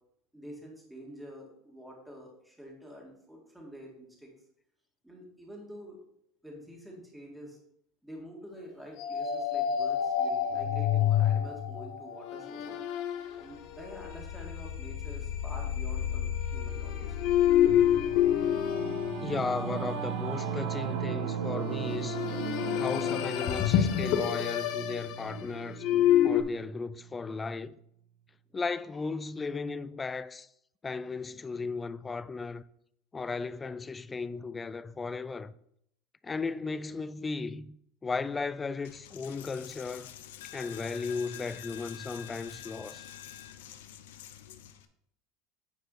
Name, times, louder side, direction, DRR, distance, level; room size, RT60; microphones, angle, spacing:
voice 1, 0.3-4.3 5.0-6.0 6.4-7.6 8.0-12.8 13.4-17.2, equal, 5° right, 2.1 m, -47 dB
sound 1, 9.0-20.1 21.6-26.4, left 10 dB, 60° left, 0.9 m, -28 dB
Singing / Musical instrument, 17.4-27.1, right 7 dB, 90° right, 1.1 m, -37 dB
voice 2, 19.2-22.2 22.7-27.8 28.5-30.5 30.8-32.6 33.1-35.5 36.2-37.8 38.0-40.1 40.5-43.1, left 4 dB, 15° left, 0.3 m, -35 dB
Coin (dropping), 38.8-44.9, left 11 dB, 90° left, 0.7 m, -47 dB
9.3 x 4.7 x 4.1 m
supercardioid pair, 130°, 0 cm